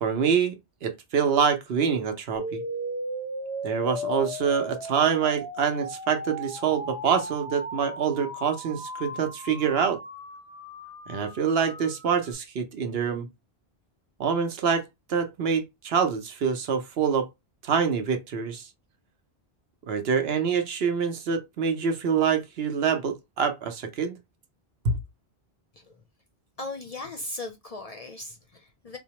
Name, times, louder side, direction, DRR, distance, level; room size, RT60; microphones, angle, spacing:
voice 1, 0.0-2.6 3.6-10.0 11.1-13.3 14.2-14.8 15.1-17.3 17.6-18.7 19.9-24.1 24.8-25.0, right 6 dB, 70° right, 0.9 m, -26 dB
sound 1, 2.3-12.3, equal, 10° right, 1.0 m, -36 dB
voice 2, 26.6-29.0, left 2 dB, 50° left, 0.5 m, -38 dB
4.4 x 2.1 x 2.9 m
omnidirectional pair, 1.1 m